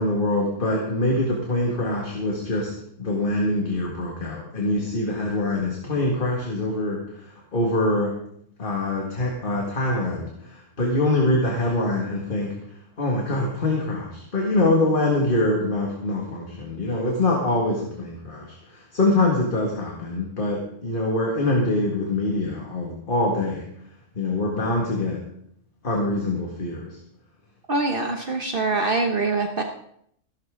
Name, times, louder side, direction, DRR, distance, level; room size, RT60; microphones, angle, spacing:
voice 1, 0.0-2.7 3.0-8.2 8.6-23.7 24.2-25.2 25.8-27.0, left 2 dB, 45° left, -1 dB, 2.1 m, -24 dB
voice 2, 27.7-29.6, right 3 dB, 45° right, 4 dB, 1.1 m, -24 dB
15.0 x 12.5 x 3.7 m, 0.69 s
omnidirectional pair, 1.3 m